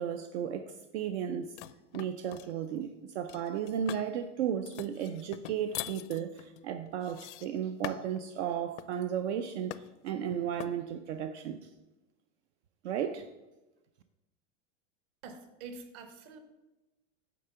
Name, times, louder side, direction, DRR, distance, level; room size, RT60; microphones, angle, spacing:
voice 1, 0.0-1.6 1.9-11.7 12.8-13.3, right 9 dB, 70° right, 0.6 m, -34 dB
sound 1, 1.6-2.5 3.3-4.1 4.7-8.2 8.8-9.0 9.7-10.1 10.6-10.8, left 15 dB, 75° left, 0.5 m, -43 dB
voice 2, 15.2-16.4, right 4 dB, 40° right, 1.0 m, -46 dB
9.3 x 3.8 x 6.6 m
supercardioid pair, 165°, 35 cm